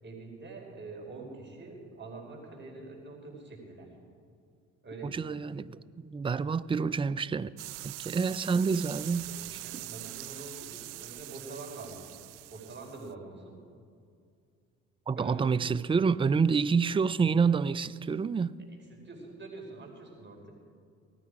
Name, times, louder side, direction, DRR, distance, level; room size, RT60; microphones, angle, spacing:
voice 1, 0.0-3.9 4.8-5.5 9.2-12.1 12.5-13.6 15.1-15.5 18.7-20.5, right 3 dB, 35° right, 4.9 m, -45 dB
voice 2, 5.1-5.8 6.0-7.5 7.8-9.3 15.1-18.5, right 5 dB, 15° right, 0.5 m, -27 dB
sound 1, 7.6-13.1, right 19 dB, 70° right, 0.5 m, -43 dB
18.5 x 14.0 x 5.0 m
hypercardioid pair, 60°, 33 cm